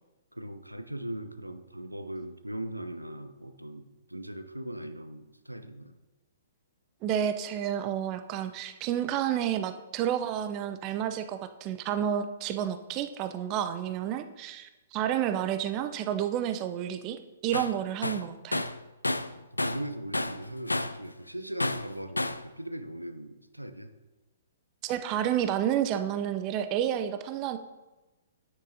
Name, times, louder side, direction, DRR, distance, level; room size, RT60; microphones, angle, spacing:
voice 1, 0.3-5.9 17.6-17.8 19.3-23.9, right 1 dB, 90° right, 9 dB, 0.6 m, -39 dB
voice 2, 7.0-18.7 24.8-27.6, right 10 dB, 30° right, 10 dB, 0.5 m, -30 dB
Tools, 17.5-17.8 18.0-19.9 20.1-21.0 21.6-22.5, left 2 dB, 80° left, 0.4 m, -31 dB
9.8 x 9.1 x 2.7 m, 1.1 s
figure-of-eight pair, 115°, 0 cm